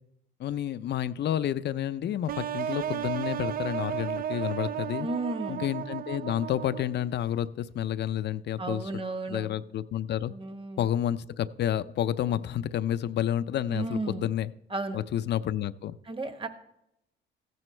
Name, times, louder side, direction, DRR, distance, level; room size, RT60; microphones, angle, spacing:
voice 1, 0.4-5.1 5.5-8.8 9.3-10.3 10.8-14.5 14.9-16.0, left 11 dB, 60° left, 0.5 m, -30 dB
sound 1, 2.3-7.1, right 9 dB, 50° right, 0.4 m, -34 dB
voice 2, 5.0-5.7 8.6-9.5 10.3-10.9 13.7-14.3 14.7-15.0 16.0-16.5, right 2 dB, 25° right, 1.3 m, -34 dB
15.0 x 9.3 x 3.3 m
cardioid pair, 90°, 20 cm